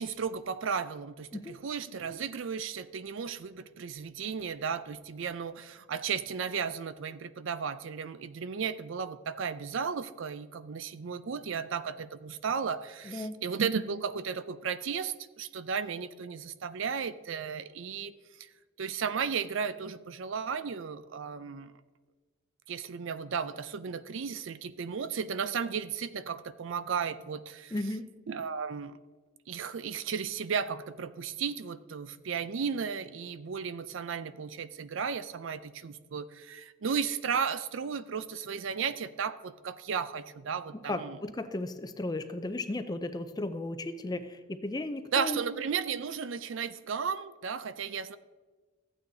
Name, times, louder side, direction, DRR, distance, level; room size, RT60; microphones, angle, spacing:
voice 1, 0.0-18.1 18.4-18.5 18.8-21.8 22.7-27.7 28.3-29.0 29.5-41.2 45.1-48.2, right 6 dB, 65° right, 14 dB, 0.4 m, -34 dB
voice 2, 13.1-13.4 27.7-28.1 40.9-45.4, left 2 dB, 20° left, 10 dB, 0.5 m, -35 dB
14.5 x 9.0 x 2.7 m, 1.3 s
head